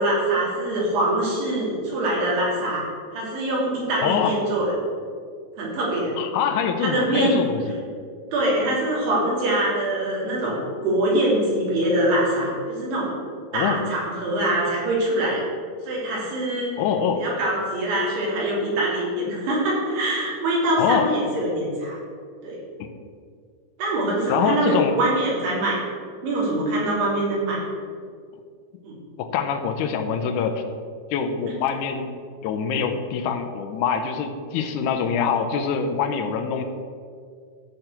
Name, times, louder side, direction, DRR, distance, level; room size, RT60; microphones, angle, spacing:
voice 1, 0.0-2.8 3.1-4.7 5.6-6.2 6.8-7.4 8.3-13.1 13.5-15.4 15.9-16.7 17.2-22.0 22.4-22.6 23.8-25.8 26.2-27.6 28.8-28.9, right 1 dB, 85° right, -5 dB, 4.9 m, -24 dB
voice 2, 4.0-4.4 6.2-7.8 13.5-13.8 16.8-17.3 20.8-21.1 22.8-22.9 24.3-25.0 29.2-30.6 31.1-32.1 32.4-36.6, left 7 dB, 90° left, 5 dB, 1.7 m, -24 dB
12.5 x 4.4 x 8.0 m, 2.1 s
omnidirectional pair, 4.5 m